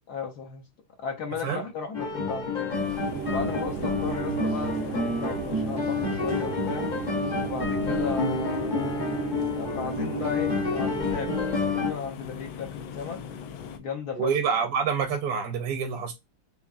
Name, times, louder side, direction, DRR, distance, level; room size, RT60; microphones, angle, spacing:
voice 1, 0.1-0.6 1.0-2.8 3.3-6.9 7.4-9.1 9.5-13.2 13.8-14.4, left 5 dB, 65° left, 1.0 m, -35 dB
sound 1, 1.9-11.9, left 4 dB, 50° left, 0.5 m, -29 dB
sound 2, 2.7-13.8, left 6 dB, 90° left, 1.4 m, -41 dB
sound 3, 3.0-11.4, right 7 dB, 85° right, 1.6 m, -34 dB
voice 2, 14.2-16.1, right 6 dB, 65° right, 1.1 m, -27 dB
5.3 x 2.4 x 2.3 m
omnidirectional pair, 2.1 m